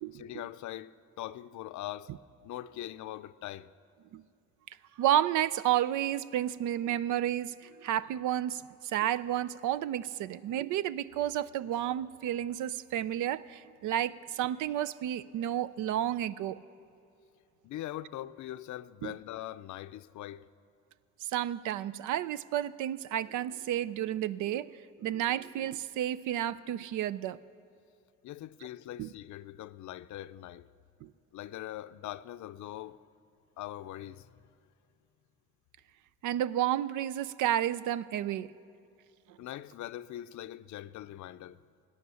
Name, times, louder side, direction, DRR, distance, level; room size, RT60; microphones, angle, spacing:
voice 1, 0.1-2.1 2.4-3.7 17.6-20.5 28.2-30.7 31.3-33.0 33.6-34.3 39.4-41.6, left 13 dB, 70° left, 0.5 m, -42 dB
voice 2, 5.0-16.6 19.0-19.1 21.2-24.7 25.0-27.4 29.0-29.1 31.0-31.1 36.2-38.5, right 11 dB, 80° right, 0.5 m, -31 dB
18.0 x 10.0 x 6.9 m
cardioid pair, 90°, 30 cm